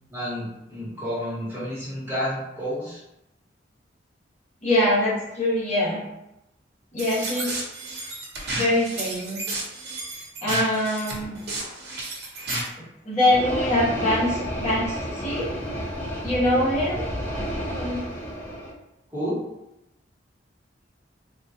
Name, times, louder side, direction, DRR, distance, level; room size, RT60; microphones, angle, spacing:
voice 1, 0.1-3.0 19.1-19.4, equal, 15° right, -9 dB, 1.2 m, -30 dB
voice 2, 4.6-6.0 6.9-7.5 8.5-9.4 10.4-11.4 12.8-15.5 16.2-17.0 17.7-18.0, left 1 dB, 40° left, -8 dB, 1.1 m, -23 dB
sound 1, 7.0-12.7, right 2 dB, 60° right, 0.9 m, -32 dB
sound 2, 13.3-18.7, equal, 15° left, 0.5 m, -31 dB
3.6 x 2.3 x 2.7 m, 0.88 s
head